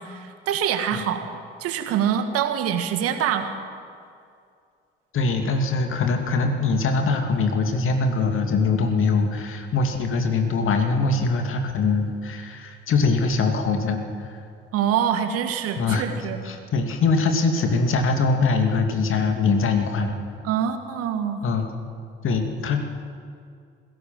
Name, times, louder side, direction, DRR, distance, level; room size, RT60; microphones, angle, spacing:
voice 1, 0.0-1.3 1.6-3.6 14.7-16.4 20.4-21.4, right 9 dB, 55° right, 8 dB, 1.7 m, -25 dB
voice 2, 5.1-14.3 15.8-16.1 16.4-20.2 21.4-21.7 22.2-22.8, left 4 dB, 45° left, 5 dB, 2.6 m, -22 dB
20.5 x 17.0 x 7.5 m, 2.3 s
figure-of-eight pair, 50°, 29 cm